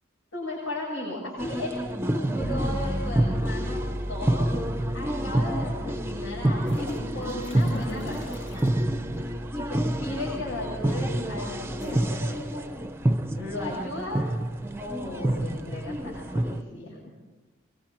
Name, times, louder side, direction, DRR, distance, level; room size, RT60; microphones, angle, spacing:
voice 1, 0.3-1.8 2.1-4.5 4.9-8.4 9.5-12.9 13.3-14.2 14.8-17.0, left 2 dB, 85° left, -6 dB, 8.0 m, -36 dB
sound 1, 1.4-16.6, right 1 dB, 10° right, 0.6 m, -28 dB
Bass guitar, 2.4-12.1, equal, 25° left, 1.9 m, -37 dB
sound 2, 6.5-8.8 10.1-10.5 11.7-12.0, left 2 dB, 60° left, 2.0 m, -39 dB
24.5 x 23.5 x 4.5 m, 1.2 s
head